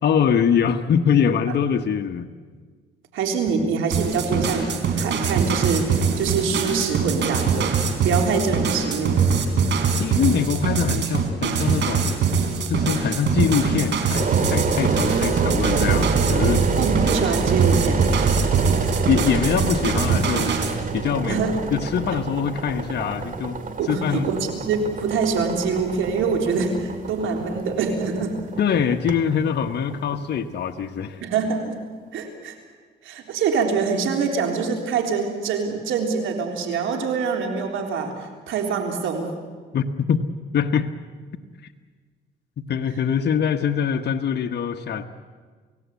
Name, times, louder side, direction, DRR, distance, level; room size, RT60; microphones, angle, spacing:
voice 1, 0.0-2.3 10.0-12.2 12.7-16.6 19.0-20.5 20.9-21.4 21.7-23.6 23.9-24.3 28.6-31.2 39.7-40.3 40.5-40.9 42.6-45.0, left 7 dB, 55° left, 5 dB, 1.3 m, -23 dB
voice 2, 3.1-7.8 8.0-9.3 16.8-18.1 21.3-21.5 23.8-28.4 31.2-31.8 32.1-32.6 33.0-39.3, right 5 dB, 80° right, 3 dB, 3.8 m, -25 dB
sound 1, 3.9-20.7, right 5 dB, 65° right, 3.7 m, -23 dB
Engine, 14.1-31.0, right 4 dB, 40° right, 2.3 m, -27 dB
29.0 x 17.0 x 8.4 m, 1.5 s
cardioid pair, 90°, 20 cm